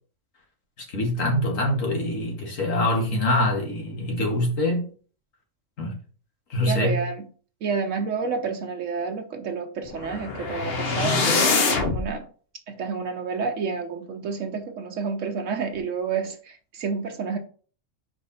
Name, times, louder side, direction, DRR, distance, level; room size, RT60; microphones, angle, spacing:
voice 1, 0.9-4.9 5.8-6.0 6.5-7.0, left 1 dB, 85° left, -1 dB, 2.1 m, -24 dB
voice 2, 6.7-7.2 7.6-12.3 12.7-17.4, right 5 dB, 75° right, 4 dB, 1.1 m, -29 dB
sound 1, 9.9-12.1, left 4 dB, 55° left, 1.1 m, -24 dB
5.1 x 4.7 x 4.1 m, 0.42 s
omnidirectional pair, 1.3 m